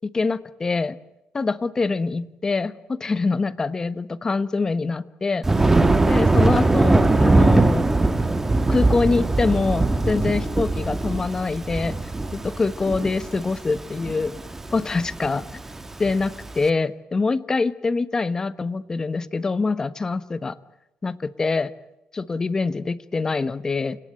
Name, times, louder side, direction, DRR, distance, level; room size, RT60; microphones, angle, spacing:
voice 1, 0.0-1.0 1.3-5.4 6.1-7.9 8.7-12.0 12.3-14.3 14.7-15.5 16.0-20.6 21.0-21.7 22.1-24.0, left 3 dB, 25° left, 15 dB, 1.2 m, -24 dB
Thunder, 5.4-16.5, right 2 dB, 15° right, 1.9 m, -21 dB
29.0 x 18.0 x 9.0 m, 0.92 s
cardioid pair, 105°, 3 cm